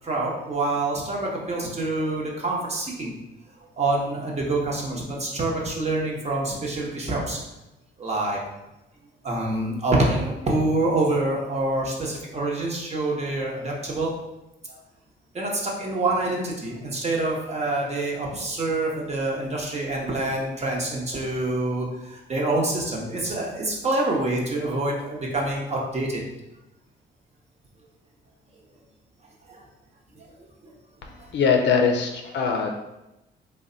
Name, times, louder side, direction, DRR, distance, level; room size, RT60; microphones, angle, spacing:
voice 1, 0.0-3.1 3.8-7.4 8.0-8.4 9.2-14.1 14.7-14.8 15.3-26.2 29.5-29.6, right 2 dB, 35° right, -2 dB, 0.9 m, -26 dB
voice 2, 31.3-32.7, left 5 dB, 65° left, 2 dB, 0.5 m, -21 dB
3.3 x 2.2 x 3.8 m, 0.96 s
cardioid pair, 90°, 20 cm